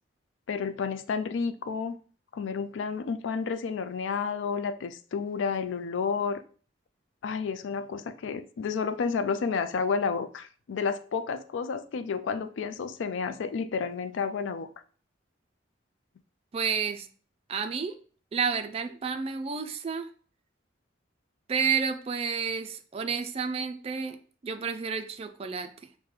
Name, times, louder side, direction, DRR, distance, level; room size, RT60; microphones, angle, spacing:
voice 1, 0.5-2.0 2.3-6.4 7.2-14.7, left 5 dB, 85° left, 0.4 m, -31 dB
voice 2, 16.5-17.1 17.5-17.9 18.3-20.1 21.5-24.2 24.4-25.7, right 6 dB, 30° right, 0.3 m, -30 dB
5.9 x 2.1 x 3.2 m
head